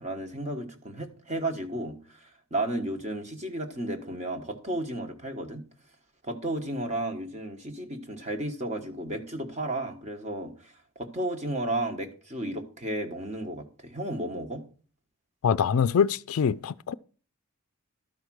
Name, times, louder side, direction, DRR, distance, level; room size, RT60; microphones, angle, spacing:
voice 1, 0.0-5.6 6.2-14.6, right 1 dB, 30° right, 1.4 m, -33 dB
voice 2, 15.4-16.9, left 7 dB, 70° left, 0.3 m, -24 dB
12.5 x 4.8 x 6.3 m
head